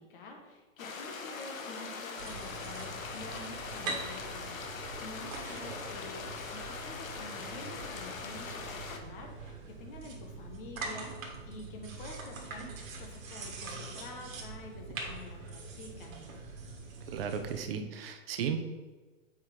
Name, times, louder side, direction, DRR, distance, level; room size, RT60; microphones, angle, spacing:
voice 1, 0.0-11.2 11.4-16.2, left 2 dB, 40° left, 2 dB, 1.3 m, -48 dB
sound 1, 0.8-9.0, left 4 dB, 85° left, 1.1 m, -41 dB
sound 2, 2.2-17.6, right 3 dB, 80° right, 1.8 m, -43 dB
voice 2, 17.1-18.6, right 7 dB, 45° right, 7 dB, 0.8 m, -34 dB
7.3 x 4.8 x 3.6 m, 1.2 s
hypercardioid pair, 160°, 40 cm